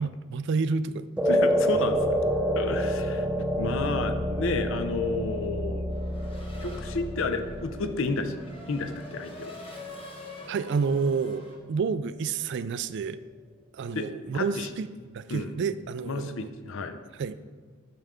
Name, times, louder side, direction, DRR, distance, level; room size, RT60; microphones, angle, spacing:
voice 1, 0.0-1.1 10.5-13.2 13.7-16.5 17.2-17.4, right 5 dB, 55° right, 14 dB, 0.3 m, -29 dB
sound 1, 1.2-9.7, equal, 5° right, 0.5 m, -29 dB
voice 2, 1.3-2.0 2.6-5.9 6.6-8.4 8.7-9.5 13.9-14.1 14.3-14.7 15.3-15.5 16.1-17.0, left 3 dB, 60° left, 9 dB, 0.6 m, -31 dB
sound 2, 1.7-8.8, left 2 dB, 85° left, 1.1 m, -36 dB
Race car auto racing / Accelerating revving vroom, 5.9-11.6, left 2 dB, 25° left, 1.1 m, -45 dB
8.7 x 6.8 x 3.6 m, 1.5 s
head